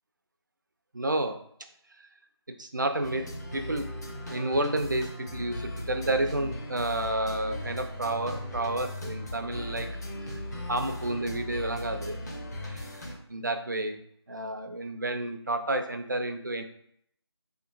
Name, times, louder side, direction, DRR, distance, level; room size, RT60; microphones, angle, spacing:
voice 1, 0.9-1.4 2.6-3.9 4.3-9.9 10.3-10.4 10.7-12.2 12.6-12.9 13.3-14.0 14.3-16.6, right 1 dB, 45° right, 5 dB, 0.4 m, -30 dB
sound 1, 3.0-13.1, left 1 dB, 40° left, 0.8 m, -37 dB
4.3 x 2.9 x 2.5 m, 0.68 s
figure-of-eight pair, 165°, 14 cm